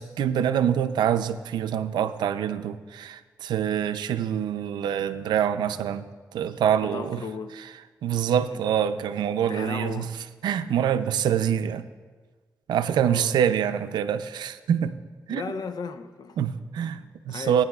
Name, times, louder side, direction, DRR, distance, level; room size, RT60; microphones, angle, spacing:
voice 1, 0.0-6.1 6.3-7.2 8.0-10.1 10.4-11.8 12.7-15.0 15.3-15.4 16.4-17.6, right 9 dB, 90° right, 0.5 m, -25 dB
voice 2, 6.8-7.5 8.4-8.6 9.5-10.1 13.1-13.4 15.3-16.4 17.3-17.6, left 5 dB, 70° left, 0.7 m, -36 dB
19.0 x 9.6 x 2.4 m
cardioid pair, 50°, 7 cm